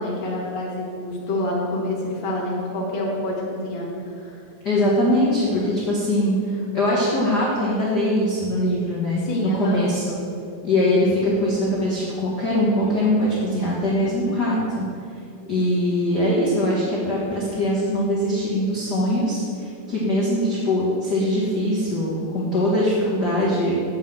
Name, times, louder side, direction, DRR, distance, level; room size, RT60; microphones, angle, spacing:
voice 1, 0.0-4.4 9.2-9.8, left 1 dB, 25° left, -4 dB, 1.3 m, -27 dB
voice 2, 4.6-10.2 10.6-14.9 15.5-23.7, left 1 dB, 45° left, -6 dB, 1.4 m, -22 dB
7.4 x 7.3 x 7.4 m, 2.6 s
omnidirectional pair, 4.0 m